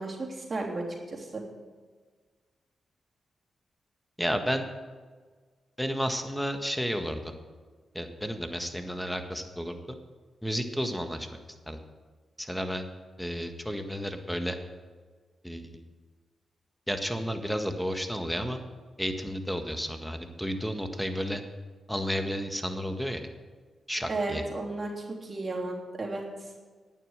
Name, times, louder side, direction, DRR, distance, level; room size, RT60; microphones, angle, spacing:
voice 1, 0.0-1.4 24.1-26.5, right 2 dB, 40° right, -2 dB, 3.3 m, -34 dB
voice 2, 4.2-4.7 5.8-7.3 7.9-9.8 10.4-11.3 11.7-11.8 12.4-12.9 13.2-14.6 15.4-15.7 16.9-18.6 19.0-21.4 21.9-23.3 23.9-24.4, equal, ahead, 6 dB, 1.6 m, -32 dB
11.0 x 9.3 x 6.6 m, 1.5 s
cardioid pair, 55°, 0 cm